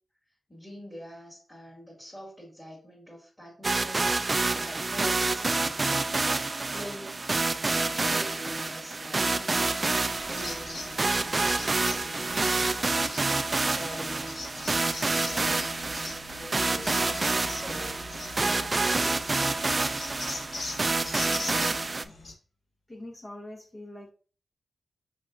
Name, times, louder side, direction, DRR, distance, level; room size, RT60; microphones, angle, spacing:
voice 1, 0.5-5.9 6.7-9.8 10.3-19.2, equal, 10° left, -7 dB, 2.4 m, -44 dB
sound 1, 3.6-22.0, right 3 dB, 35° right, 0.4 m, -28 dB
sound 2, 10.1-22.3, left 2 dB, 60° left, 1.2 m, -42 dB
voice 2, 21.2-22.1 22.9-24.1, left 1 dB, 30° left, 0 dB, 1.2 m, -45 dB
5.1 x 4.2 x 2.5 m, 0.40 s
cardioid pair, 65°, 0 cm